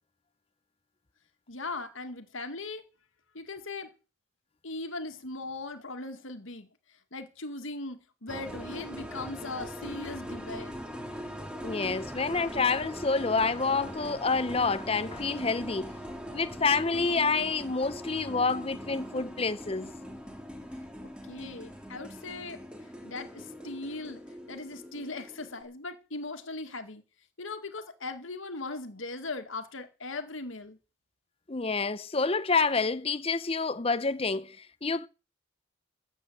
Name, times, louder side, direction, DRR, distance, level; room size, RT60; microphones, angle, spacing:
voice 1, 1.5-2.8 3.3-3.9 4.6-6.7 7.1-10.8 21.3-22.6 23.0-24.2 24.5-27.0 27.4-30.8, left 3 dB, 70° left, 2.0 m, -39 dB
sound 1, 8.3-25.6, equal, 5° right, 2.5 m, -41 dB
voice 2, 11.6-16.0 16.3-19.9 31.5-35.1, left 4 dB, 30° left, 0.6 m, -28 dB
14.0 x 8.3 x 7.8 m
head